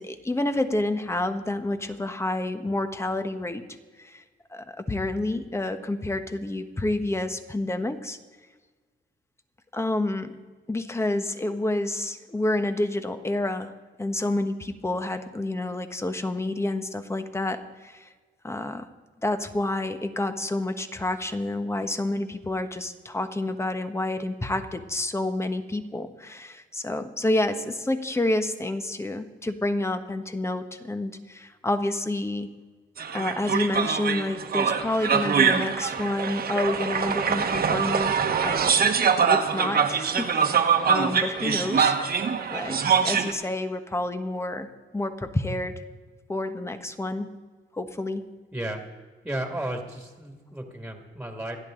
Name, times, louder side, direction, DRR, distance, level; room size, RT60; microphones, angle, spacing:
voice 1, 0.0-3.7 4.0-4.2 4.5-8.2 9.7-10.4 10.7-13.7 14.0-18.1 18.4-18.9 19.2-32.5 33.1-38.1 38.4-38.7 39.2-41.9 42.5-44.7 44.9-45.8 46.3-47.4 47.7-48.2, left 2 dB, 15° left, 8 dB, 1.3 m, -29 dB
sound 1, 33.0-43.3, right 6 dB, 50° right, 1.5 m, -24 dB
voice 2, 48.5-48.8 49.2-51.6, right 1 dB, 5° right, 2 dB, 2.4 m, -33 dB
27.0 x 10.5 x 3.9 m, 1.3 s
cardioid pair, 90°, 20 cm